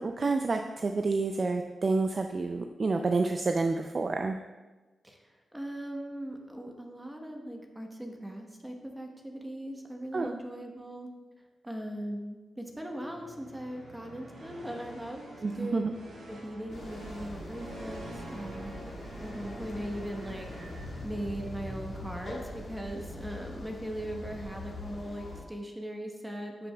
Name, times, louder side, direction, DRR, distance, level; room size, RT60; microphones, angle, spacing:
voice 1, 0.0-4.4 10.1-10.4 15.4-15.9, right 3 dB, 50° right, 5 dB, 0.3 m, -29 dB
voice 2, 5.0-11.1 11.6-15.2 15.5-15.8 16.3-18.7 19.2-20.5 21.0-26.7, equal, 10° right, 2 dB, 1.0 m, -39 dB
sound 1, 12.9-21.5, right 1 dB, 90° right, 1.7 m, -47 dB
sound 2, 16.7-25.4, left 1 dB, 60° left, 1.3 m, -42 dB
11.5 x 5.1 x 2.2 m, 1.2 s
cardioid pair, 55°, 0 cm